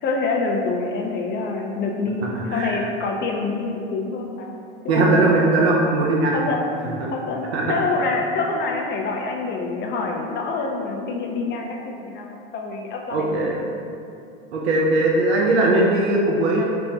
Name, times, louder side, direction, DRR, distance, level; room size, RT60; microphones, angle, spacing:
voice 1, 0.0-4.6 4.8-5.3 6.3-6.7 7.1-13.4, left 3 dB, 35° left, 1 dB, 0.5 m, -26 dB
voice 2, 2.3-2.8 4.9-6.3 7.0-7.1 7.5-7.6 13.1-13.6 14.5-16.6, right 2 dB, 85° right, -2 dB, 0.5 m, -19 dB
4.3 x 2.1 x 2.7 m, 2.5 s
hypercardioid pair, 90°, 31 cm